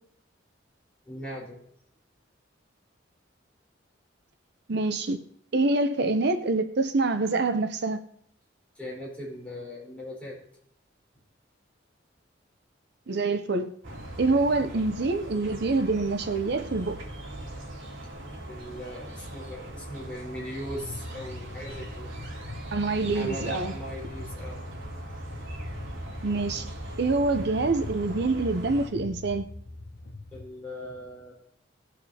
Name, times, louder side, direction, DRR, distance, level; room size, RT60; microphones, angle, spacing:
voice 1, 1.1-1.6 8.7-10.4 18.5-22.1 23.1-24.6 30.3-31.3, equal, 5° left, 4.2 m, -39 dB
voice 2, 4.7-5.2 5.5-8.0 13.1-13.7 14.2-17.0 22.7-23.7 26.2-26.6 27.0-29.4, right 3 dB, 60° right, 0.6 m, -26 dB
sound 1, 13.8-28.9, right 1 dB, 90° right, 2.4 m, -40 dB
sound 2, 20.7-30.5, left 2 dB, 50° left, 0.8 m, -42 dB
18.5 x 6.6 x 2.8 m
head